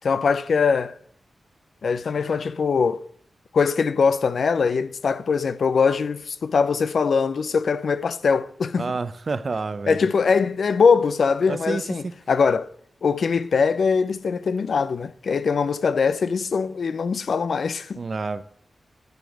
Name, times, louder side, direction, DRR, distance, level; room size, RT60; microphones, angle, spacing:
voice 1, 0.0-1.0 1.8-3.0 3.5-8.9 9.9-12.7 13.0-18.0, left 5 dB, 70° left, 0.5 m, -22 dB
voice 2, 8.8-10.0 11.5-11.8 17.9-18.4, right 4 dB, 45° right, 0.6 m, -28 dB
7.9 x 6.9 x 6.5 m
wide cardioid pair, 110°, 0 cm